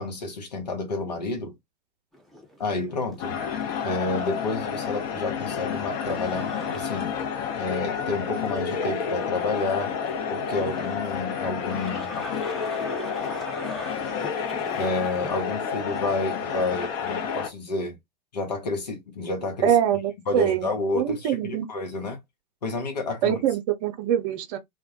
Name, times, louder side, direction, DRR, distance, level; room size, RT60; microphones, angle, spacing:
voice 1, 0.0-1.5 2.6-3.4 3.8-7.2 7.6-9.9 10.3-12.1 14.8-17.9 18.3-19.8 20.3-22.2 22.6-23.4, left 3 dB, 75° left, 0.8 m, -30 dB
sound 1, 2.1-15.3, left 1 dB, ahead, 0.7 m, -42 dB
sound 2, 3.2-17.5, left 7 dB, 45° left, 0.6 m, -30 dB
voice 2, 19.6-20.7 20.9-21.7 23.2-24.6, right 10 dB, 55° right, 0.6 m, -24 dB
2.2 x 2.1 x 2.7 m
figure-of-eight pair, 90°, 21 cm